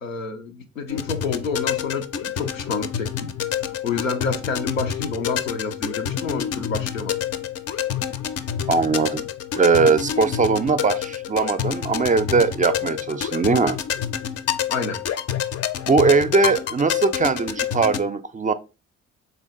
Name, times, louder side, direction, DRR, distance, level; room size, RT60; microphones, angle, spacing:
voice 1, 0.0-3.3 3.6-7.1 14.7-15.0, left 4 dB, 90° left, 0.5 m, -29 dB
sound 1, 0.9-18.0, left 9 dB, 40° left, 0.5 m, -28 dB
voice 2, 8.7-9.3 9.6-13.8 15.9-18.5, right 4 dB, 20° right, 0.4 m, -20 dB
3.7 x 3.4 x 3.8 m
figure-of-eight pair, 40°, 39 cm